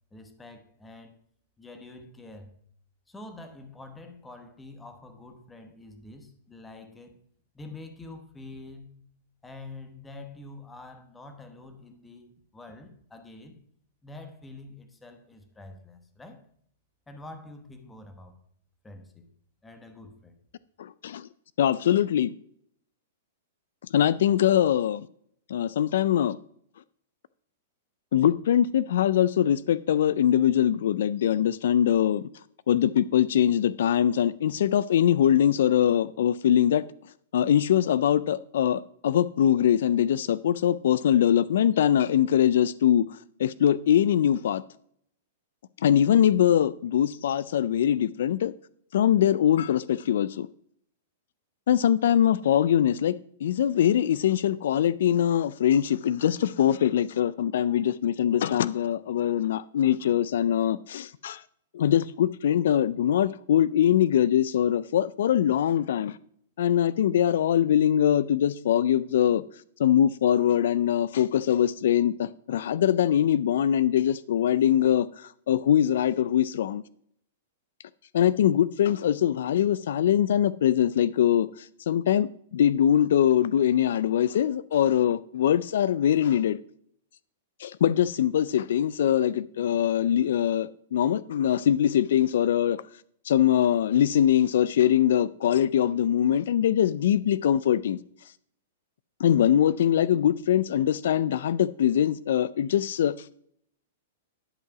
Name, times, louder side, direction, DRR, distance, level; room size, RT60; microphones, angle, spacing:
voice 1, 0.1-1.1 1.6-2.5 3.1-7.2 7.5-8.9 9.4-13.6 14.0-16.4 17.1-18.4 18.8-19.3 19.6-20.4, left 2 dB, 10° left, 1.0 m, -46 dB
voice 2, 20.8-21.3 21.6-22.3 23.9-25.1 25.5-26.4 28.1-32.2 32.7-36.8 37.3-44.6 45.8-48.5 48.9-50.5 51.7-53.1 53.4-61.4 61.7-66.2 66.6-69.4 69.8-76.8 78.1-86.6 87.6-92.8 93.2-98.0 99.2-103.3, left 10 dB, 70° left, 0.3 m, -23 dB
11.0 x 4.7 x 5.9 m
hypercardioid pair, 160°, 0 cm